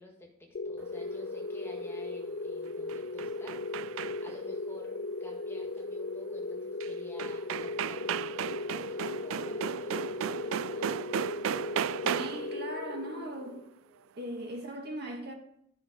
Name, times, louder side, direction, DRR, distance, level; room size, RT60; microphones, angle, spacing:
voice 1, 0.0-3.6 4.2-8.2 8.7-11.0, left 1 dB, 10° left, 1.6 m, -52 dB
sound 1, 0.5-13.7, left 3 dB, 50° left, 0.4 m, -37 dB
sound 2, 2.7-4.4 6.8-6.9 7.2-12.5, right 9 dB, 80° right, 0.3 m, -35 dB
voice 2, 12.0-13.7 14.2-15.3, right 1 dB, 55° right, 1.7 m, -39 dB
13.0 x 5.6 x 5.0 m
head